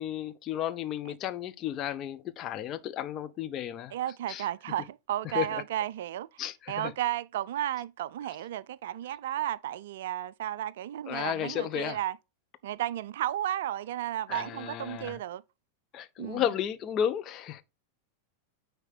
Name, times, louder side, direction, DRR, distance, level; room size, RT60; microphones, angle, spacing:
voice 1, 0.0-3.9 4.3-4.5 5.2-5.6 6.4-6.9 11.1-12.0 14.3-15.2 15.9-17.6, left 10 dB, 35° left, 0.7 m, -33 dB
voice 2, 3.9-6.3 6.7-12.2 12.6-15.4 16.2-16.4, right 12 dB, 55° right, 0.3 m, -33 dB
9.7 x 3.6 x 4.2 m
figure-of-eight pair, 90°, 0 cm